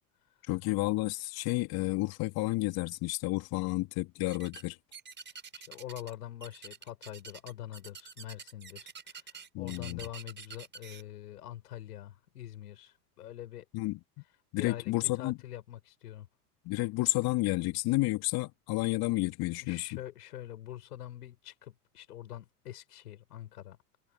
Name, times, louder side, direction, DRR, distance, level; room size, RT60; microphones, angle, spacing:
voice 1, 0.5-4.8 9.5-10.0 13.7-14.0 14.5-15.4 16.6-19.9, left 21 dB, 50° left, 2.9 m, -31 dB
sound 1, 4.3-4.7 4.9-6.1 6.4-11.0, right 6 dB, 25° right, 4.5 m, -47 dB
voice 2, 5.5-13.7 14.6-16.3 19.6-23.8, left 12 dB, 80° left, 7.1 m, -44 dB
hypercardioid pair, 95°, 46 cm